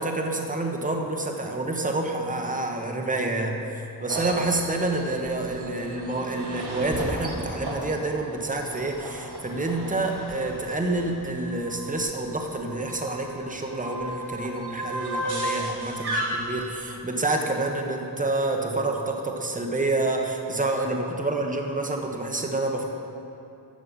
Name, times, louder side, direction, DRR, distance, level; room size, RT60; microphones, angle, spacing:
voice 1, 0.0-3.6 4.0-22.8, right 2 dB, 20° right, 2 dB, 1.1 m, -28 dB
sound 1, 4.1-16.7, right 1 dB, 80° right, 2.0 m, -35 dB
13.0 x 7.8 x 5.4 m, 2.8 s
wide cardioid pair, 100°, 38 cm